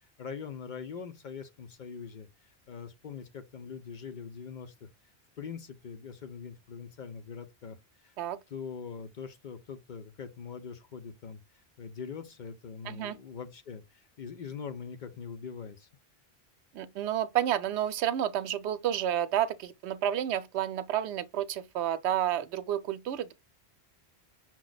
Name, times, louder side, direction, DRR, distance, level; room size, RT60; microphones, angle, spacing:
voice 1, 0.0-8.2 8.5-15.9, left 6 dB, 55° left, 0.6 m, -43 dB
voice 2, 12.9-13.2 16.7-23.3, right 11 dB, 85° right, 0.9 m, -30 dB
6.0 x 2.2 x 3.9 m
omnidirectional pair, 1.1 m